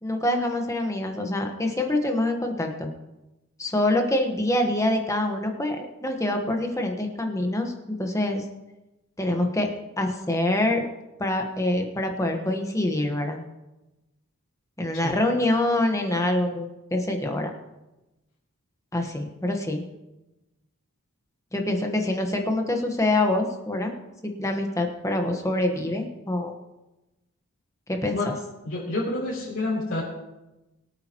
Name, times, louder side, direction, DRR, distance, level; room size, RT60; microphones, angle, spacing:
voice 1, 0.0-2.9 3.6-7.7 8.0-8.4 9.2-9.7 10.0-10.9 11.2-13.4 14.8-17.5 18.9-19.8 21.5-23.9 24.2-26.5 27.9-28.2, left 1 dB, 15° left, 3 dB, 1.2 m, -25 dB
voice 2, 28.6-30.0, left 2 dB, 60° left, -7 dB, 3.6 m, -28 dB
23.0 x 8.7 x 3.0 m, 1.0 s
head